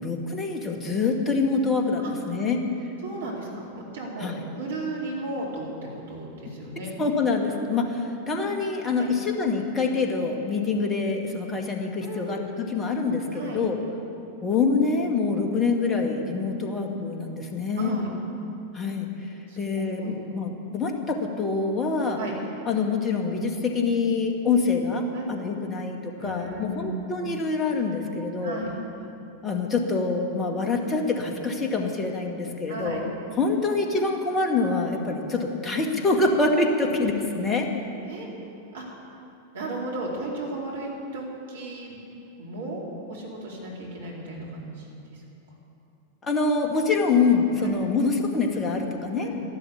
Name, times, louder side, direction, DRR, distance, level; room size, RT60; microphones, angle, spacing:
voice 1, 0.0-2.7 4.2-4.4 7.0-13.8 14.4-18.0 18.7-19.1 19.6-22.2 22.7-28.6 29.4-37.7 46.2-49.3, left 4 dB, 20° left, 3 dB, 2.0 m, -25 dB
voice 2, 3.0-6.9 8.9-9.1 12.0-12.6 13.3-13.6 17.7-18.1 19.5-20.2 22.2-22.4 25.1-25.3 26.2-27.0 28.4-28.7 32.7-33.0 38.1-38.3 38.7-38.9 39.5-42.0 42.4-42.8 43.1-45.2 47.6-47.7 49.2-49.4, right 2 dB, 60° right, -3 dB, 4.1 m, -35 dB
12.5 x 12.0 x 8.4 m, 2.8 s
figure-of-eight pair, 90°, 0 cm